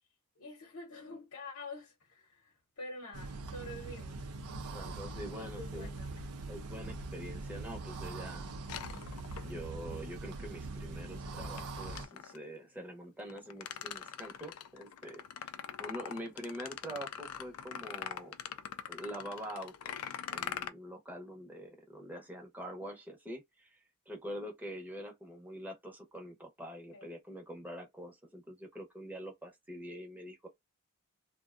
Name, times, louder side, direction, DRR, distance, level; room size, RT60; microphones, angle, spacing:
voice 1, 0.4-4.3 5.3-6.3 26.9-27.1, left 2 dB, 65° left, 0.8 m, -47 dB
sound 1, 3.1-12.1, right 3 dB, 85° right, 0.5 m, -42 dB
voice 2, 4.7-5.9 6.5-8.5 9.4-15.2 15.8-18.4 18.9-19.9 20.3-30.5, equal, 10° right, 0.7 m, -45 dB
sound 2, 8.7-9.8 11.6-12.4 13.2-20.7, left 9 dB, 85° left, 0.4 m, -43 dB
2.6 x 2.1 x 2.4 m
head